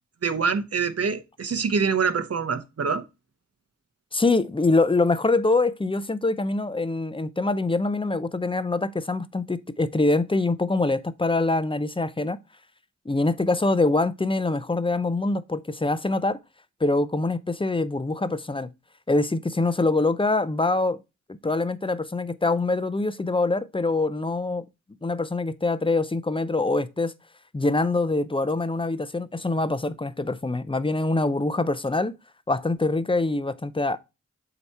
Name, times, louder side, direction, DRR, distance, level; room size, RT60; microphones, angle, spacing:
voice 1, 0.2-3.0, right 5 dB, 55° right, 0.9 m, -25 dB
voice 2, 4.1-12.4 13.1-16.4 16.8-18.7 19.1-21.0 21.4-24.6 25.0-27.1 27.5-32.1 32.5-34.0, left 2 dB, 20° left, 0.6 m, -24 dB
7.8 x 3.0 x 4.3 m
cardioid pair, 45°, 29 cm